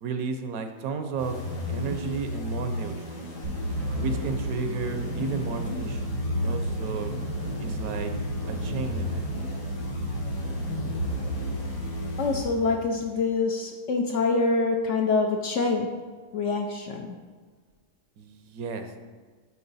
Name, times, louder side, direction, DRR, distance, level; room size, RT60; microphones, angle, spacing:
voice 1, 0.0-1.4 1.7-3.3 4.0-7.1 7.6-8.1 8.5-9.3 12.6-12.8 18.2-19.0, right 5 dB, 70° right, 7 dB, 1.0 m, -33 dB
sound 1, 1.2-12.9, left 1 dB, 90° left, 1.9 m, -33 dB
sound 2, 3.4-12.6, right 1 dB, 90° right, 1.5 m, -34 dB
voice 2, 12.2-15.9 16.3-17.2, left 3 dB, 65° left, 3 dB, 0.8 m, -25 dB
8.5 x 4.4 x 4.0 m, 1.5 s
omnidirectional pair, 1.7 m